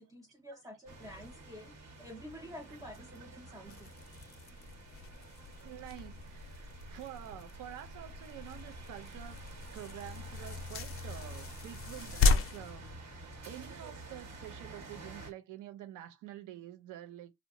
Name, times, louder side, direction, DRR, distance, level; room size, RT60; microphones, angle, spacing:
voice 1, 0.0-3.9 4.3-4.4, equal, 10° right, 0.5 m, -49 dB
sound 1, 0.9-15.3, right 1 dB, 60° right, 1.1 m, -49 dB
sound 2, 3.6-13.8, left 4 dB, 45° left, 0.6 m, -36 dB
voice 2, 5.6-9.5 9.7-17.3, right 12 dB, 85° right, 0.6 m, -48 dB
2.8 x 2.1 x 2.5 m
cardioid pair, 90°, 30 cm